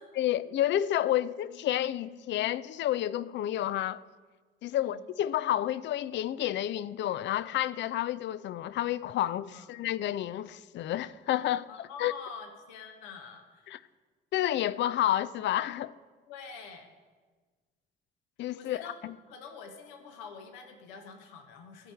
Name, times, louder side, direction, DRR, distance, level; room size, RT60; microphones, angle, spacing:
voice 1, 0.2-4.0 4.6-12.1 13.7-13.8 14.3-15.9 18.4-19.1, left 12 dB, 40° left, 0.5 m, -30 dB
voice 2, 4.7-5.0 9.4-9.7 11.7-13.8 16.3-16.9 18.5-19.0 19.3-21.9, left 5 dB, 65° left, 1.3 m, -46 dB
13.0 x 5.7 x 8.3 m
figure-of-eight pair, 50°, 29 cm